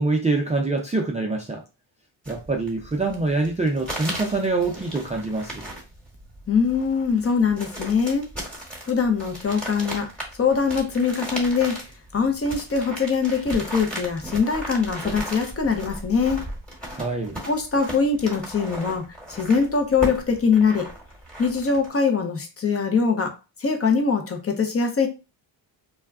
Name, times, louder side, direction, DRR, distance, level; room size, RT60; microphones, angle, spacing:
voice 1, 0.0-1.6 2.3-5.7 16.9-17.4, right 3 dB, 15° right, 0 dB, 0.4 m, -25 dB
sound 1, 2.2-21.9, right 1 dB, ahead, 1.1 m, -36 dB
voice 2, 6.5-8.3 8.8-10.1 10.4-11.8 12.1-16.4 17.5-19.0 19.3-20.9 21.4-25.1, left 5 dB, 30° left, 5 dB, 0.6 m, -22 dB
2.3 x 2.1 x 3.5 m, 0.30 s
cardioid pair, 95°, 46 cm